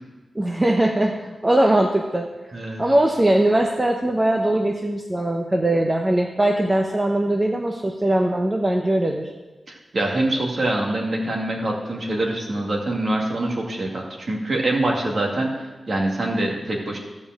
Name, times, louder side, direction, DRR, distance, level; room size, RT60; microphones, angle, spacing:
voice 1, 0.3-2.3 2.8-9.3, right 1 dB, 15° right, 1 dB, 0.7 m, -20 dB
voice 2, 2.5-2.8 9.7-17.0, right 1 dB, 45° right, 0 dB, 2.0 m, -25 dB
14.0 x 5.4 x 7.3 m, 1.2 s
wide cardioid pair, 160°, 0 cm